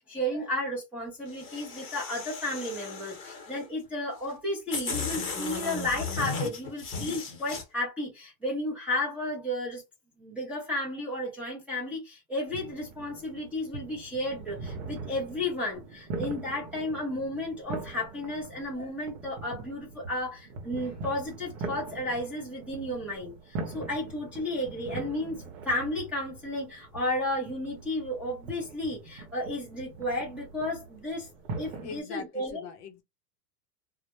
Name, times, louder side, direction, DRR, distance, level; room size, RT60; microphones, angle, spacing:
voice 1, 0.0-9.8 10.2-31.3 31.5-32.6, left 1 dB, 5° right, 0.4 m, -33 dB
sound 1, 1.3-3.6 4.3-4.4 4.7-7.6, left 4 dB, 25° left, 0.9 m, -35 dB
sound 2, 12.5-32.0, right 3 dB, 55° right, 0.8 m, -42 dB
voice 2, 31.7-33.0, left 6 dB, 45° left, 0.6 m, -42 dB
2.1 x 2.0 x 2.9 m
supercardioid pair, 140°, 48 cm